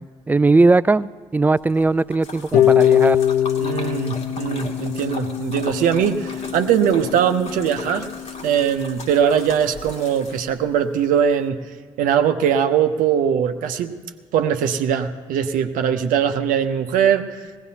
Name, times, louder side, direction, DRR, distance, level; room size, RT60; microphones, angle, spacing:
voice 1, 0.0-3.2, right 3 dB, 10° right, 18 dB, 0.3 m, -18 dB
Splash splatter, 1.6-10.7, left 2 dB, 45° left, 1.7 m, -38 dB
Harp, 2.5-8.6, left 11 dB, 65° left, 0.5 m, -22 dB
voice 2, 3.6-8.1 8.4-11.6 12.0-13.9 14.3-17.4, right 8 dB, 65° right, 7 dB, 0.7 m, -21 dB
19.5 x 16.5 x 2.8 m, 1.5 s
hypercardioid pair, 45°, 15 cm